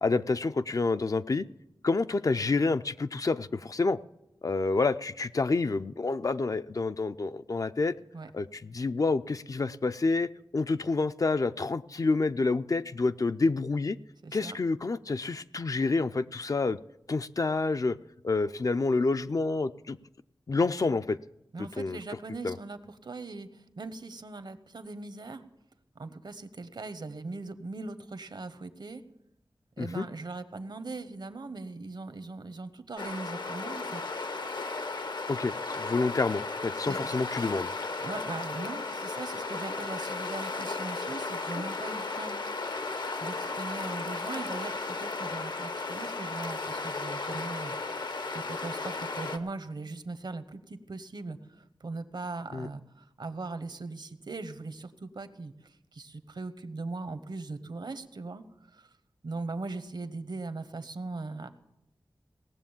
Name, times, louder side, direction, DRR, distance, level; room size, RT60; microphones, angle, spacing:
voice 1, 0.0-1.5 1.8-4.0 4.4-7.9 8.3-14.0 14.3-16.8 17.1-18.0 18.2-20.0 20.5-21.2 21.6-22.0 22.4-22.6 29.8-30.1 35.3-37.7 52.5-52.7, left 3 dB, 45° left, 12 dB, 0.4 m, -28 dB
voice 2, 14.2-14.6 21.5-25.4 25.9-29.0 29.8-34.0 36.8-37.2 38.0-42.4 43.2-47.7 48.3-58.4 58.7-58.9 59.2-61.5, right 3 dB, 70° right, 12 dB, 1.0 m, -40 dB
sound 1, 33.0-49.4, left 3 dB, 70° left, 0.9 m, -35 dB
18.0 x 7.2 x 7.2 m, 0.85 s
wide cardioid pair, 65°, 8 cm